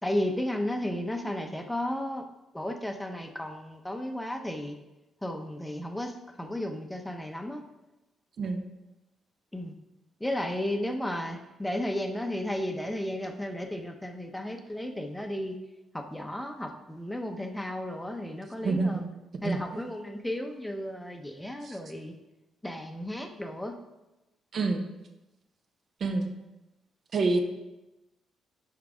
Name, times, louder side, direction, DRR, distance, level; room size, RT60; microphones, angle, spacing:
voice 1, 0.0-2.2 2.5-4.7 5.2-6.1 6.4-7.6 9.5-9.7 10.2-15.6 15.9-19.1 19.4-22.1 22.6-23.7, left 1 dB, 10° left, 4 dB, 0.7 m, -33 dB
voice 2, 18.6-19.0 19.4-19.6 21.6-21.8 24.5-24.8 26.0-26.3 27.1-27.4, right 3 dB, 55° right, 5 dB, 0.8 m, -27 dB
6.0 x 4.6 x 4.9 m, 0.98 s
cardioid pair, 90°, 0 cm